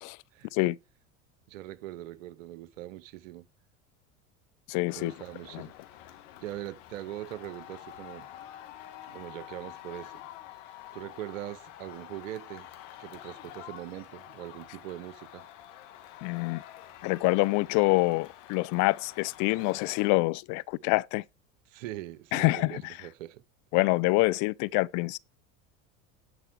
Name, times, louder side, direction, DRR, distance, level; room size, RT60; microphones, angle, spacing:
voice 1, 1.5-3.5 5.0-5.8 6.4-8.3 9.1-10.2 10.7-12.7 13.0-15.5 21.7-23.4, right 14 dB, 75° right, 0.9 m, -41 dB
voice 2, 4.7-5.1 5.5-5.7 16.2-16.6 17.0-21.2 22.3-22.9 23.7-25.2, left 22 dB, 50° left, 0.5 m, -26 dB
sound 1, 4.9-20.1, left 12 dB, 70° left, 1.9 m, -48 dB
11.0 x 4.3 x 6.1 m
hypercardioid pair, 90°, 39 cm